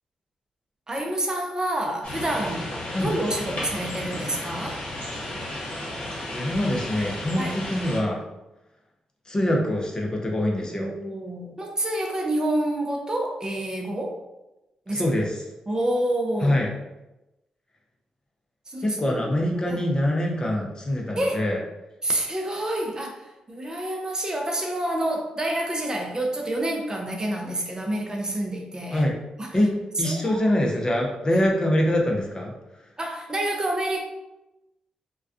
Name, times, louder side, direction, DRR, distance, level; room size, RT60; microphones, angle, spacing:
voice 1, 0.9-2.7 3.0-4.8 7.4-7.6 10.7-14.2 14.9-15.0 15.7-16.6 18.7-19.4 19.7-19.8 21.2-21.4 22.0-29.1 29.4-29.5 30.0-30.4 33.0-34.0, right 1 dB, 30° right, 1 dB, 0.5 m, -28 dB
sound 1, 2.0-8.0, left 1 dB, 55° left, 0.9 m, -33 dB
voice 2, 6.3-8.2 9.3-10.9 14.9-15.5 16.4-16.7 18.8-21.6 28.9-29.1 29.5-29.7 30.0-32.5, left 1 dB, 30° left, 0 dB, 0.6 m, -24 dB
2.3 x 2.2 x 2.4 m, 0.97 s
supercardioid pair, 40°, 3 cm